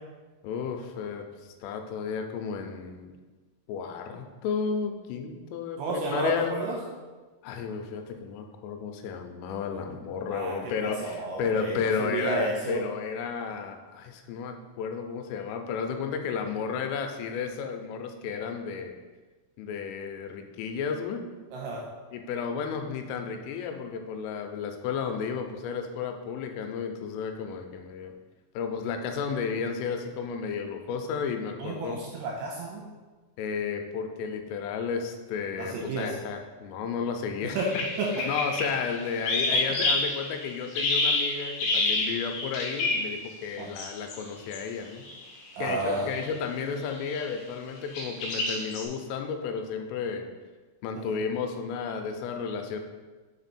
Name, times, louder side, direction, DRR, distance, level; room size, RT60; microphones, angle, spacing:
voice 1, 0.4-3.1 3.7-6.6 7.4-18.9 19.6-21.2 22.1-28.1 28.6-32.0 33.4-37.8 38.3-45.0 45.6-50.3 50.8-52.8, left 6 dB, 85° left, 5 dB, 3.2 m, -33 dB
voice 2, 5.8-6.8 10.3-10.6 10.8-12.8 21.5-21.9 31.6-32.8 35.6-36.2 37.6-37.7 38.0-38.1 43.6-43.7 45.6-46.1 50.9-51.2, right 3 dB, 80° right, -2 dB, 2.7 m, -31 dB
sound 1, 37.6-43.2 43.8-44.3 44.5-44.6 45.1-45.3 46.0-46.3 46.9-47.3 47.9-48.8, left 2 dB, 70° left, 2.4 m, -28 dB
6.6 x 4.4 x 4.1 m, 1.3 s
omnidirectional pair, 5.8 m